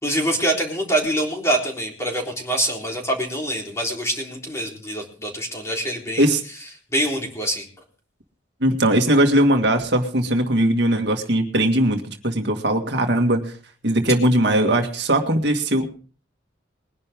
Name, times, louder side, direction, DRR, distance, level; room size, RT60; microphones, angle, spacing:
voice 1, 0.0-6.3 6.9-7.7, right 1 dB, 15° left, 0 dB, 3.7 m, -25 dB
voice 2, 8.6-13.5 13.8-15.9, right 1 dB, 60° right, 4 dB, 1.9 m, -19 dB
21.5 x 11.0 x 3.6 m, 0.41 s
head